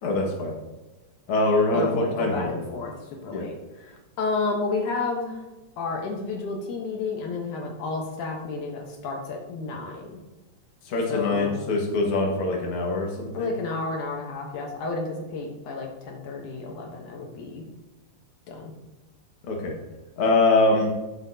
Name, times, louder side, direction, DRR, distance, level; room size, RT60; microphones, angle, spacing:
voice 1, 0.0-0.5 1.3-2.6 3.3-3.5 10.9-13.5 19.5-19.7 20.2-20.9, left 2 dB, 50° left, -1 dB, 2.2 m, -23 dB
voice 2, 1.7-2.9 3.2-5.4 5.8-10.2 11.1-11.6 13.3-17.7 18.5-18.7, left 3 dB, 75° left, 1 dB, 2.6 m, -31 dB
13.0 x 7.3 x 2.8 m, 1.1 s
omnidirectional pair, 3.6 m